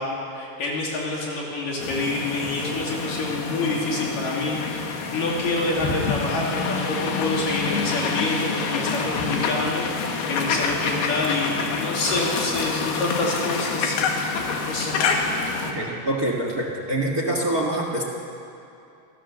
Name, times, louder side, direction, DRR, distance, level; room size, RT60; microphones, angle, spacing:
voice 1, 0.0-14.0 14.7-15.0, left 2 dB, 60° left, -3 dB, 4.3 m, -27 dB
sound 1, 1.8-15.7, left 5 dB, 85° left, 3.9 m, -27 dB
voice 2, 15.6-18.0, right 1 dB, 40° right, 1 dB, 1.3 m, -25 dB
27.5 x 19.5 x 7.0 m, 2.7 s
omnidirectional pair, 4.5 m